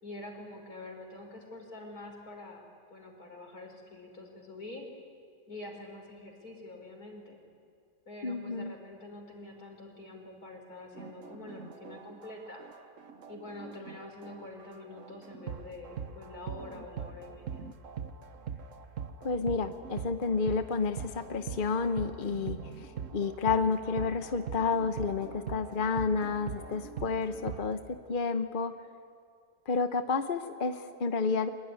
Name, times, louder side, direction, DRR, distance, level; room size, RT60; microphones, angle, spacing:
voice 1, 0.0-4.9 5.5-7.4 8.1-12.6 13.3-17.6, left 2 dB, 60° left, 3 dB, 4.7 m, -46 dB
voice 2, 8.2-8.7 19.2-27.8 28.1-28.7 29.7-31.5, left 4 dB, 40° left, 8 dB, 0.8 m, -30 dB
sound 1, 11.0-27.7, right 7 dB, 50° right, 1.3 m, -42 dB
24.0 x 22.0 x 9.6 m, 2.3 s
omnidirectional pair, 1.8 m